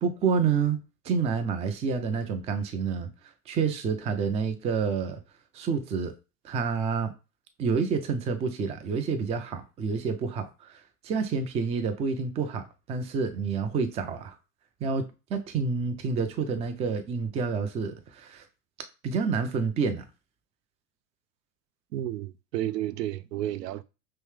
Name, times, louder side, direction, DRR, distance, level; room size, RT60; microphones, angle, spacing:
voice 1, 0.0-3.1 3.5-5.2 5.5-6.1 6.4-7.1 7.6-14.4 14.8-18.4 19.0-20.0, right 5 dB, 15° right, 0.3 m, -28 dB
voice 2, 21.9-23.8, right 13 dB, 80° right, 0.5 m, -32 dB
5.3 x 2.1 x 3.3 m
hypercardioid pair, 90°, 49 cm